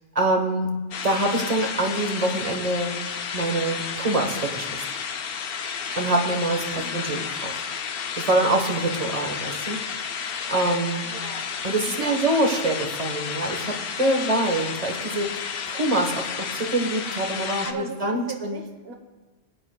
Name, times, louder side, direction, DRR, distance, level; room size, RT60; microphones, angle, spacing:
voice 1, 0.1-0.7 1.0-3.0 3.3-4.8 6.0-7.5 8.1-9.8 10.5-11.1 11.6-18.6, right 2 dB, 35° right, 3 dB, 1.2 m, -25 dB
sound 1, 0.9-17.7, left 6 dB, 60° left, 0.8 m, -32 dB
voice 2, 6.7-7.1 8.4-9.0 11.0-11.5 11.9-12.5 17.6-18.9, right 4 dB, 60° right, 5 dB, 1.3 m, -39 dB
19.0 x 9.4 x 2.3 m, 1.3 s
omnidirectional pair, 1.1 m